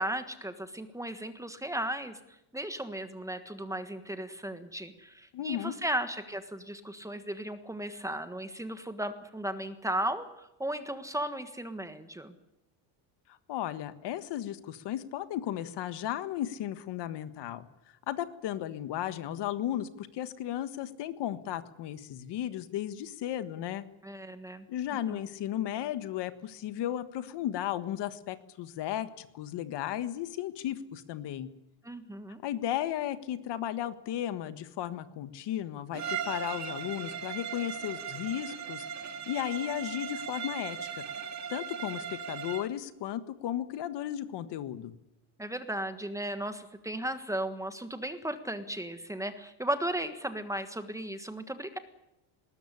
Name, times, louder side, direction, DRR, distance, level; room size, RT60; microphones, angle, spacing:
voice 1, 0.0-12.3 24.0-24.7 25.1-25.2 31.8-32.4 45.4-51.8, right 1 dB, 5° right, 9 dB, 1.5 m, -36 dB
voice 2, 5.3-5.8 13.5-17.7 18.1-23.8 24.7-31.5 32.4-40.8 41.5-44.9, left 11 dB, 55° left, 12 dB, 1.7 m, -35 dB
Bowed string instrument, 35.9-42.7, right 7 dB, 35° right, 2.3 m, -38 dB
20.5 x 19.5 x 10.0 m, 0.87 s
cardioid pair, 165°, 50 cm